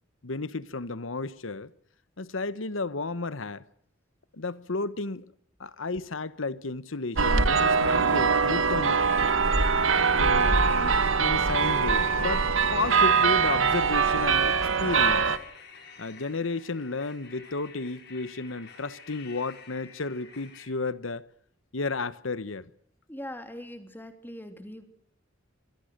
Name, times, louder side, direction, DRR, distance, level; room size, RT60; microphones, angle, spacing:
voice 1, 0.2-1.7 2.2-3.6 4.3-5.2 5.6-9.0 10.1-15.2 16.0-21.3 21.7-22.7, left 3 dB, 80° left, 1.1 m, -33 dB
sound 1, 7.2-15.4, right 5 dB, 85° right, 1.5 m, -23 dB
sound 2, 11.5-20.7, left 6 dB, 60° left, 5.1 m, -49 dB
voice 2, 23.1-24.8, left 1 dB, 10° left, 3.2 m, -41 dB
25.5 x 24.0 x 6.7 m
head